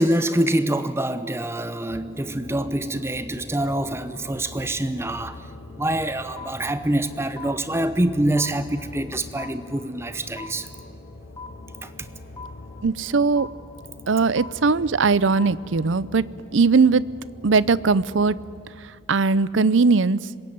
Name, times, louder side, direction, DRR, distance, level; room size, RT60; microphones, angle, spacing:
voice 1, 0.0-5.5 5.8-10.7 11.8-12.1, right 1 dB, 15° right, 0.7 m, -25 dB
sound 1, 1.9-18.6, left 2 dB, 90° left, 4.4 m, -43 dB
sound 2, 6.4-6.5 7.4-7.5 8.4-8.5 9.4-9.5 10.4-10.5 11.4-11.5 12.4-12.5 13.4-13.5 14.4-14.5 15.4-15.5, left 5 dB, 20° left, 2.9 m, -37 dB
voice 2, 12.8-13.5 14.1-17.0 17.4-18.4 19.1-20.3, right 4 dB, 75° right, 0.6 m, -19 dB
26.0 x 22.0 x 9.4 m
head